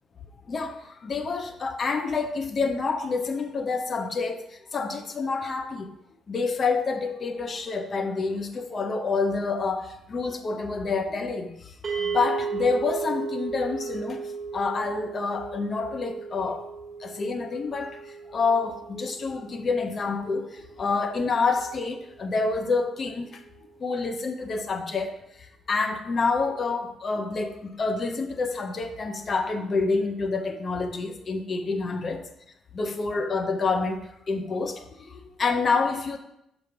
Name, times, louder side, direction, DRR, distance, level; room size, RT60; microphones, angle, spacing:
voice 1, 0.5-5.9 6.3-16.7 17.0-23.4 23.8-32.2 32.7-36.2, left 4 dB, 40° left, 6 dB, 0.6 m, -28 dB
sound 1, 11.8-22.1, right 5 dB, 30° right, 1.3 m, -36 dB
5.7 x 4.9 x 4.7 m, 0.79 s
figure-of-eight pair, 45°, 0 cm